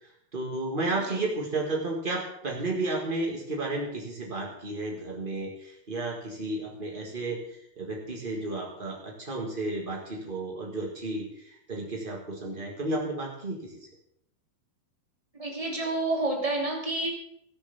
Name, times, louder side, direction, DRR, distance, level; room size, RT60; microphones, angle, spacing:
voice 1, 0.0-13.8, right 2 dB, 45° right, -2 dB, 0.6 m, -33 dB
voice 2, 15.3-17.1, right 2 dB, 10° right, -2 dB, 2.6 m, -29 dB
16.0 x 6.9 x 6.9 m, 0.76 s
omnidirectional pair, 4.1 m